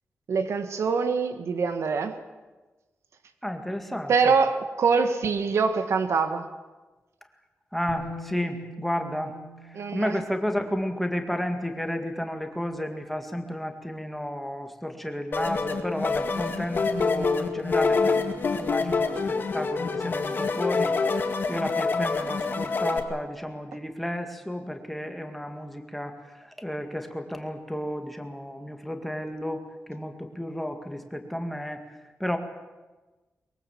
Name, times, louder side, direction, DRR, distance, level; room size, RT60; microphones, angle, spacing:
voice 1, 0.3-2.2 4.1-6.5 9.7-10.2, right 5 dB, 75° right, 9 dB, 1.7 m, -24 dB
voice 2, 3.4-4.3 7.7-9.4 9.6-21.0 21.5-32.4, equal, 5° left, 5 dB, 2.0 m, -32 dB
Bass guitar, 7.9-11.8 13.0-13.1, equal, 40° right, 5.3 m, -45 dB
sound 1, 15.3-23.0, left 4 dB, 45° left, 2.0 m, -26 dB
23.0 x 22.5 x 7.4 m, 1.2 s
wide cardioid pair, 170°, 5 cm